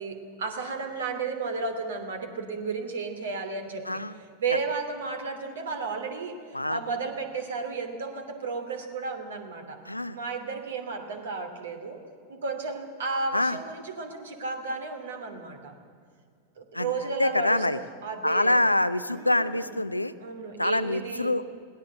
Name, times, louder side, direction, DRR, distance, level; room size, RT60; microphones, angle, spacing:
voice 1, 0.0-4.0 4.4-6.4 6.7-9.8 10.1-12.0 12.3-15.7 16.6-18.6 19.1-19.8 20.2-21.3, right 4 dB, 65° right, 6 dB, 2.8 m, -33 dB
voice 2, 9.9-10.2 13.3-13.6 16.7-16.9 17.2-17.8 18.2-20.1 20.6-21.4, left 1 dB, 85° left, 13 dB, 0.7 m, -25 dB
21.0 x 17.5 x 7.9 m, 2.2 s
figure-of-eight pair, 90°, 0 cm